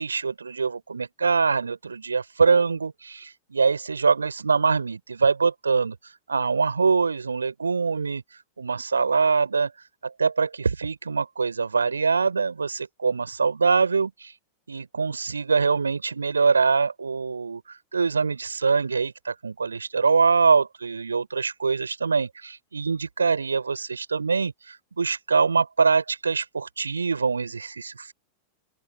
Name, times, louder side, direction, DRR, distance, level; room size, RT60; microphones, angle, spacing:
voice 1, 0.0-5.9 6.3-8.2 8.6-9.7 10.0-14.3 14.7-17.6 17.9-28.1, right 5 dB, 75° right, 5.0 m, -24 dB
open air
figure-of-eight pair, 90°, 0 cm